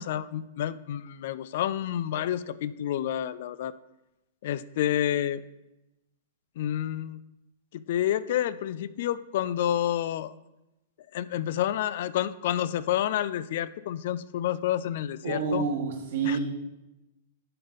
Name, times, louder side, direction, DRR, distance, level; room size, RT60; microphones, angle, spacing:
voice 1, 0.0-3.7 4.4-5.4 6.6-7.2 7.7-10.3 11.1-15.7 16.2-16.4, left 11 dB, 60° left, 17 dB, 0.3 m, -29 dB
voice 2, 15.2-16.4, right 5 dB, 65° right, 2 dB, 1.5 m, -28 dB
12.0 x 4.0 x 3.9 m, 0.94 s
hypercardioid pair, 140°, 0 cm